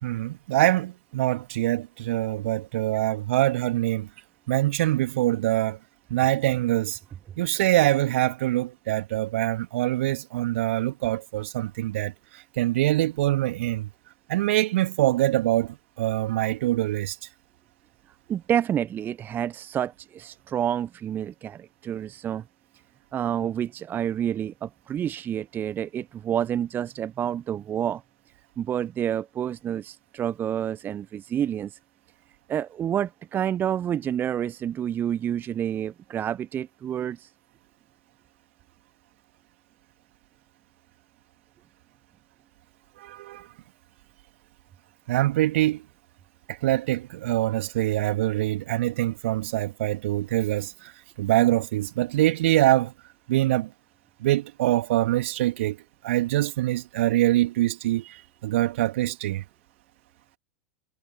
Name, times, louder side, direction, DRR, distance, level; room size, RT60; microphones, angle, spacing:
voice 1, 0.0-4.1 4.5-5.8 6.1-7.0 7.4-13.9 14.3-17.2 43.0-43.5 45.1-45.8 46.5-50.9 51.2-52.9 53.3-53.7 54.2-55.8 56.0-59.4, right 15 dB, 60° right, 2.8 m, -24 dB
voice 2, 18.3-22.4 23.1-28.0 28.6-31.8 32.5-37.3, right 9 dB, 25° right, 0.7 m, -29 dB
figure-of-eight pair, 90°, 8 cm